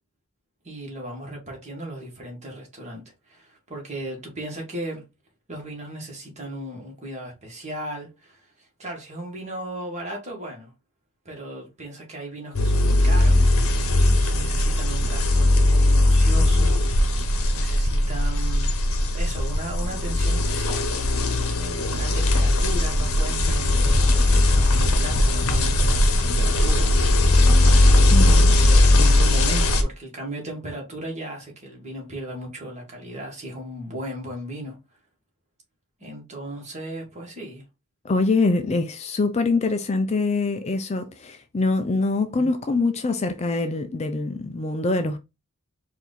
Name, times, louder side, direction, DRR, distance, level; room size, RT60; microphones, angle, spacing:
voice 1, 0.6-5.0 5.5-10.7 11.3-13.4 14.2-16.9 17.5-18.7 19.1-20.9 21.1-21.3 21.8-27.6 28.2-34.8 36.0-37.6 42.3-42.5, right 1 dB, 30° right, 1.9 m, -36 dB
sound 1, 12.5-29.8, left 1 dB, 75° left, 0.9 m, -19 dB
voice 2, 28.1-28.6 38.0-45.2, left 3 dB, 30° left, 0.4 m, -24 dB
4.6 x 2.7 x 4.0 m
head